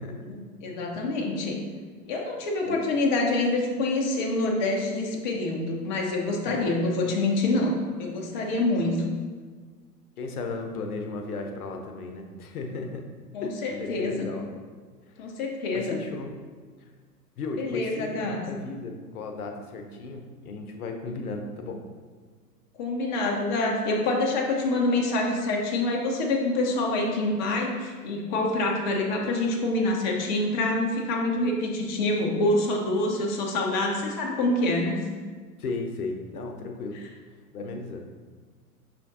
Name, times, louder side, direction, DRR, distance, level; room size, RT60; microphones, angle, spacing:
voice 1, 0.1-1.6 2.1-9.2 13.3-14.3 15.2-16.0 17.6-18.4 22.8-35.0, left 2 dB, 30° left, 0 dB, 0.5 m, -26 dB
voice 2, 10.2-13.1 13.4-14.5 15.1-15.2 15.7-16.4 17.4-21.8 35.6-37.1 37.5-38.1, left 3 dB, 65° left, 4 dB, 0.7 m, -35 dB
5.6 x 3.4 x 2.5 m, 1.5 s
figure-of-eight pair, 100°, 48 cm